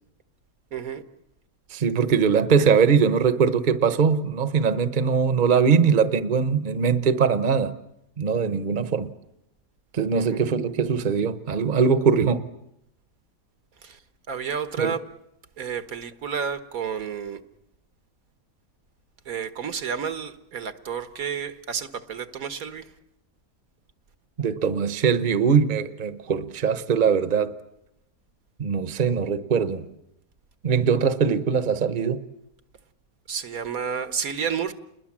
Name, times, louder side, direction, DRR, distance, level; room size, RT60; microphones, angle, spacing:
voice 1, 0.7-1.0 10.1-10.4 13.8-14.0 14.3-15.0 15.6-17.4 19.2-22.9 33.3-34.7, right 7 dB, 75° right, 1.7 m, -31 dB
voice 2, 1.7-7.8 8.2-9.1 9.9-12.4 14.8-14.9 24.4-27.5 28.6-29.9 30.6-32.2, right 6 dB, 35° right, 1.1 m, -21 dB
29.0 x 21.5 x 7.4 m
omnidirectional pair, 1.5 m